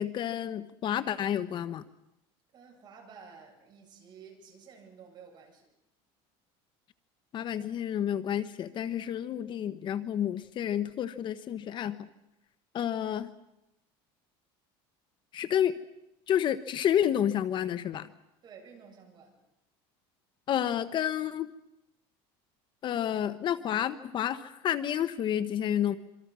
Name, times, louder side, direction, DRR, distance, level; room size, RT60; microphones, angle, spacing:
voice 1, 0.0-1.8 7.3-12.0 12.7-13.3 15.3-15.7 16.3-18.1 20.5-21.5 22.8-26.0, left 10 dB, 40° left, 12 dB, 1.0 m, -30 dB
voice 2, 2.5-5.7 18.4-19.4, right 6 dB, 35° right, 2 dB, 8.0 m, -52 dB
26.5 x 25.0 x 6.2 m, 0.89 s
cardioid pair, 135°, 12 cm